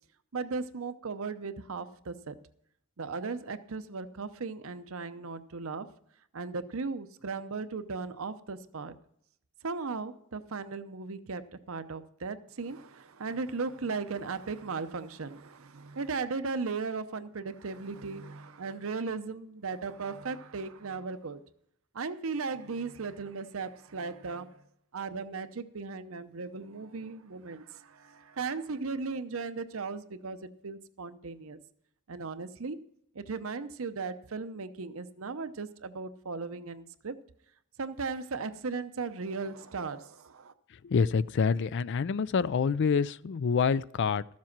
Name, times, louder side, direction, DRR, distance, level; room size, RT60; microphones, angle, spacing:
voice 1, 0.3-2.3 3.0-5.9 6.3-8.9 9.6-21.4 21.9-24.6 24.9-31.6 32.1-32.8 33.1-37.1 37.8-40.5, right 4 dB, 65° right, 0.7 m, -37 dB
voice 2, 40.7-44.3, left 5 dB, 55° left, 0.4 m, -27 dB
13.5 x 7.5 x 5.9 m
head